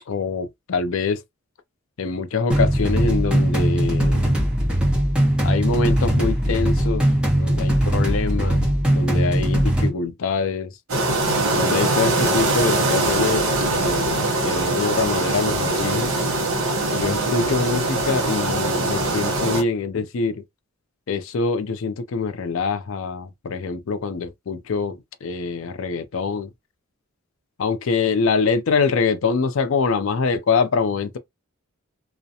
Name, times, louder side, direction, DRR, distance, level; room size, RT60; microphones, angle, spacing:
voice 1, 0.1-1.2 2.0-4.4 5.4-7.0 7.3-10.7 11.5-13.4 13.7-16.1 16.9-20.4 21.1-26.5 27.6-31.2, left 4 dB, 70° left, 0.4 m, -24 dB
sound 1, 2.5-9.9, right 1 dB, 5° right, 0.9 m, -20 dB
sound 2, 10.9-19.6, right 2 dB, 65° right, 0.9 m, -22 dB
2.4 x 2.0 x 2.7 m
head